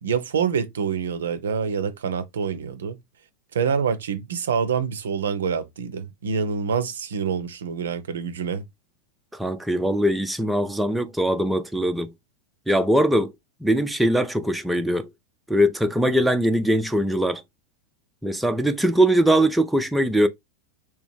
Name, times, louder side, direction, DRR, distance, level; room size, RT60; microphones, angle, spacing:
voice 1, 0.0-3.0 3.5-8.7, right 6 dB, 65° right, 0.5 m, -26 dB
voice 2, 9.3-12.1 12.7-13.3 13.6-15.1 15.5-17.4 18.2-20.3, right 1 dB, 5° right, 0.4 m, -21 dB
3.4 x 3.0 x 3.0 m
figure-of-eight pair, 90°, 0 cm